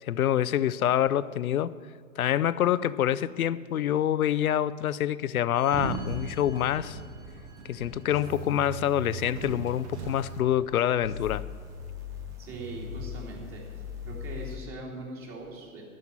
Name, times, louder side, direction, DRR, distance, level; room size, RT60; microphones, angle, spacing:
voice 1, 0.0-1.7 2.2-7.0 7.7-11.4, left 11 dB, 80° left, 16 dB, 0.5 m, -26 dB
Sliding door, 5.6-10.8, right 4 dB, 55° right, 1.5 m, -39 dB
sound 1, 8.1-10.4 11.0-14.6, left 3 dB, 10° right, 0.3 m, -40 dB
voice 2, 12.4-13.6 14.0-15.8, right 2 dB, 30° right, -1 dB, 2.8 m, -40 dB
12.5 x 5.8 x 9.1 m, 2.1 s
figure-of-eight pair, 110°, 42 cm